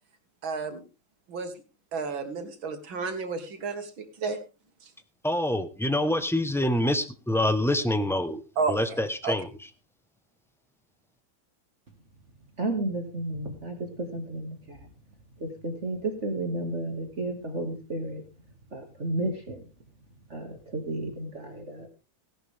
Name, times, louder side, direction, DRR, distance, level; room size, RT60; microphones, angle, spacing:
voice 1, 0.4-0.8 1.3-1.5 1.9-4.4 8.6-8.8 9.2-9.3, right 4 dB, 80° right, 7 dB, 2.7 m, -31 dB
voice 2, 5.2-8.4 8.7-9.7, left 1 dB, ahead, 10 dB, 0.7 m, -26 dB
voice 3, 12.6-14.8 15.4-18.2 18.7-19.6 20.3-21.9, right 2 dB, 35° right, 4 dB, 2.4 m, -32 dB
17.0 x 11.5 x 3.6 m, 0.31 s
omnidirectional pair, 2.1 m